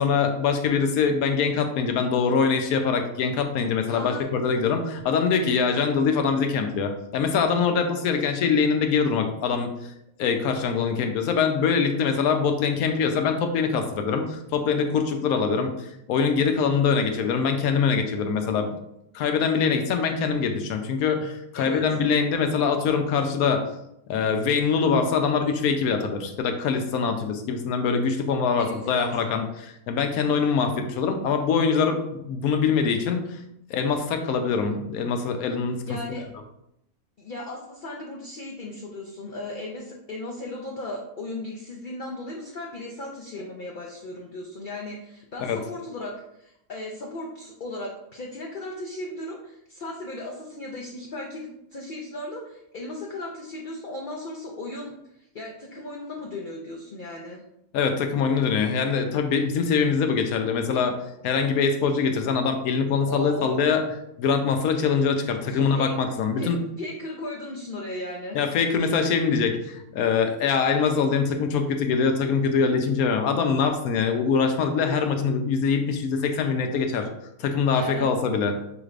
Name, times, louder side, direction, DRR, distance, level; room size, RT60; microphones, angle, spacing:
voice 1, 0.0-9.9 10.2-18.8 19.1-23.7 24.1-33.4 33.7-35.8 45.4-45.6 57.7-61.0 61.2-63.8 64.2-66.6 68.3-77.1 77.4-78.6, left 5 dB, 85° left, 6 dB, 1.1 m, -23 dB
voice 2, 3.9-4.3 21.6-21.8 28.6-29.1 35.9-36.3 37.2-57.4 63.0-63.6 65.4-65.9 66.4-66.5 66.8-68.4 77.7-78.1, left 2 dB, 55° left, -1 dB, 0.5 m, -36 dB
6.0 x 3.2 x 2.4 m, 0.80 s
omnidirectional pair, 1.5 m